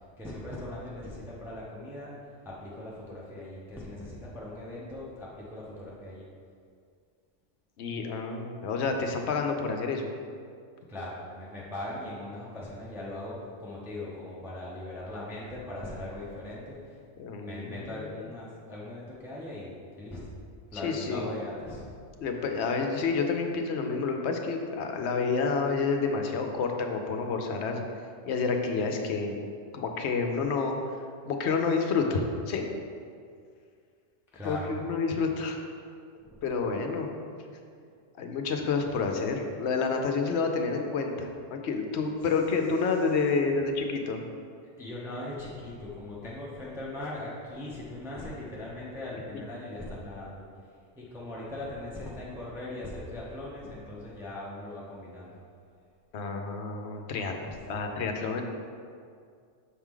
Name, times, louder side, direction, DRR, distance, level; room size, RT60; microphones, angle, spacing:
voice 1, 0.2-2.1 2.4-6.3 10.9-16.8 17.4-20.2 20.7-21.9 34.3-34.7 36.2-36.4 44.8-50.4 51.0-55.4 57.5-57.6, left 1 dB, ahead, -6 dB, 0.8 m, -39 dB
voice 2, 7.8-10.1 17.2-18.3 20.7-21.4 22.2-27.8 28.3-29.4 29.7-30.8 31.3-32.7 34.4-35.6 36.4-37.1 38.2-44.2 56.1-58.4, left 4 dB, 70° left, 4 dB, 0.9 m, -29 dB
6.4 x 4.7 x 3.7 m, 2.2 s
omnidirectional pair, 1.3 m